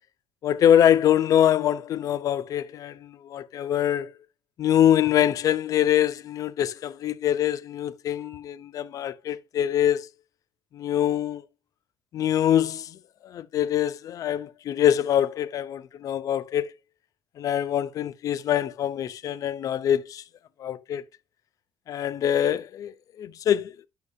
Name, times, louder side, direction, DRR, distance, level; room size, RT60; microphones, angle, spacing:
voice 1, 0.4-4.1 4.6-10.1 10.7-11.4 12.1-13.0 13.2-16.7 17.4-20.2 20.6-21.0 21.9-22.9 23.2-23.7, left 10 dB, 50° left, 0.5 m, -24 dB
9.6 x 6.3 x 2.6 m
cardioid pair, 145°, 7 cm